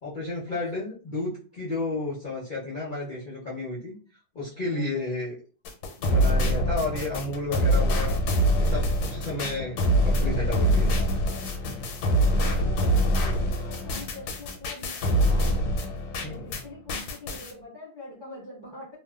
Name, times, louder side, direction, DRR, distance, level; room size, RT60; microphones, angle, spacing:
voice 1, 0.0-4.0 4.3-5.3 6.0-8.2 8.7-10.9 16.2-16.6, left 2 dB, 65° left, -8 dB, 0.5 m, -32 dB
voice 2, 4.5-5.3 6.9-7.1 12.3-15.6 16.1-19.0, left 2 dB, 20° right, -6 dB, 0.6 m, -45 dB
sound 1, 5.6-16.6 16.9-17.5, equal, 85° left, 1.3 m, -25 dB
3.0 x 2.1 x 2.3 m, 0.38 s
omnidirectional pair, 2.0 m